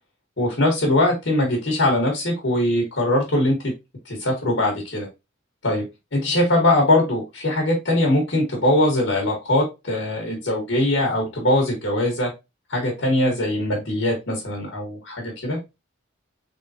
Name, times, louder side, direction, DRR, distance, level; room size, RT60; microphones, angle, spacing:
voice 1, 0.4-3.6 4.0-5.1 5.6-5.8 6.1-12.3 12.7-15.6, left 1 dB, 65° left, 0 dB, 1.5 m, -21 dB
3.8 x 3.5 x 2.8 m, 0.23 s
head